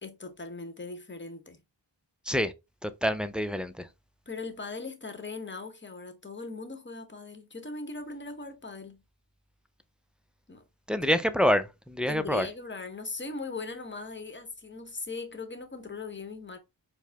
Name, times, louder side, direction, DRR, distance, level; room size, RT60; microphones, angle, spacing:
voice 1, 0.0-1.6 4.3-9.0 10.5-10.6 12.1-16.6, left 3 dB, 25° left, 0.9 m, -39 dB
voice 2, 2.8-3.9 10.9-12.5, equal, ahead, 0.4 m, -27 dB
4.7 x 2.1 x 3.4 m
cardioid pair, 45°, 45 cm